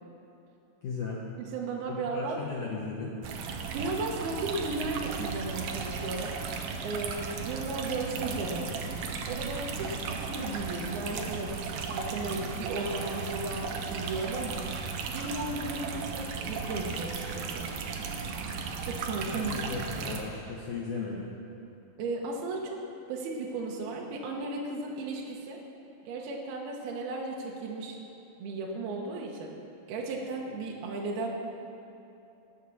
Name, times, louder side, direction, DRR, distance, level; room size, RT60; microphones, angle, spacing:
voice 1, 0.8-1.2 2.1-3.2 9.8-9.9 19.3-21.3, left 4 dB, 75° left, -4 dB, 1.8 m, -36 dB
voice 2, 1.4-2.4 3.7-6.4 6.8-8.7 9.3-14.6 15.1-17.7 18.8-19.5 22.0-22.8 23.1-25.6 26.0-28.0 28.4-29.5 29.9-31.3, right 3 dB, 70° right, -1 dB, 2.6 m, -35 dB
sound 1, 3.2-20.2, right 5 dB, 85° right, 2.0 m, -35 dB
18.5 x 6.5 x 7.1 m, 2.8 s
omnidirectional pair, 5.4 m